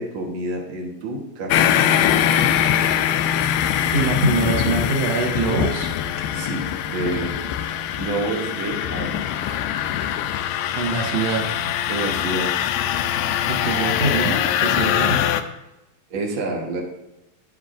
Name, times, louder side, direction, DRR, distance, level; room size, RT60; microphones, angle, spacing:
voice 1, 0.0-1.8 6.3-9.5 11.9-12.5 14.8-14.9 16.1-16.8, right 2 dB, 80° right, -1 dB, 1.1 m, -29 dB
sound 1, 1.5-15.4, left 10 dB, 90° left, 2.5 m, -22 dB
voice 2, 3.9-5.9 10.7-11.4 13.5-15.2, right 3 dB, 60° right, 1 dB, 1.7 m, -23 dB
9.9 x 9.8 x 2.5 m, 0.94 s
omnidirectional pair, 4.3 m